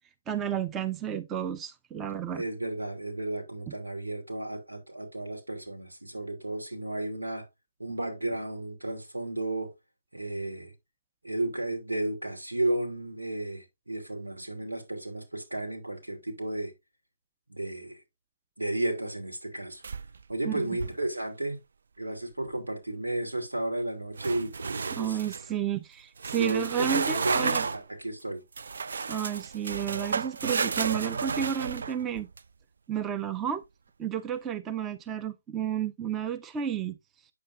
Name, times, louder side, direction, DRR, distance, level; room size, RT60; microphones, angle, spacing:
voice 1, 0.3-2.4 3.7-3.8 20.4-20.7 24.9-27.7 29.1-32.3 32.9-33.6 34.0-37.0, right 9 dB, 15° right, 0.6 m, -31 dB
voice 2, 2.3-7.5 7.8-9.7 10.1-10.7 11.2-16.7 17.5-18.0 18.6-19.8 20.3-21.6 22.0-25.2 26.4-28.4, right 1 dB, 90° right, 2.7 m, -33 dB
sound 1, 19.8-20.3 20.7-21.1 24.2-25.4 26.2-27.8 28.6-32.4, right 5 dB, 65° right, 0.3 m, -32 dB
8.5 x 7.6 x 2.5 m
figure-of-eight pair, 135°, 0 cm